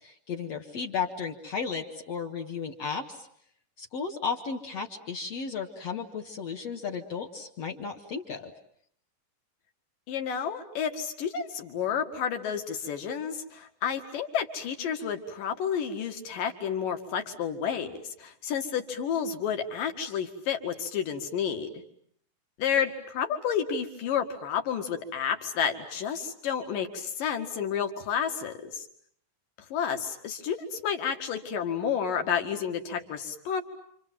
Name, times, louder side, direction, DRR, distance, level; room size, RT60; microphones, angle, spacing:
voice 1, 0.0-3.3 3.8-8.5, left 5 dB, 55° left, 1 dB, 2.2 m, -34 dB
voice 2, 10.1-21.7 22.6-28.9 29.7-33.6, left 7 dB, 75° left, 5 dB, 3.5 m, -30 dB
28.5 x 26.5 x 7.6 m, 0.65 s
omnidirectional pair, 4.0 m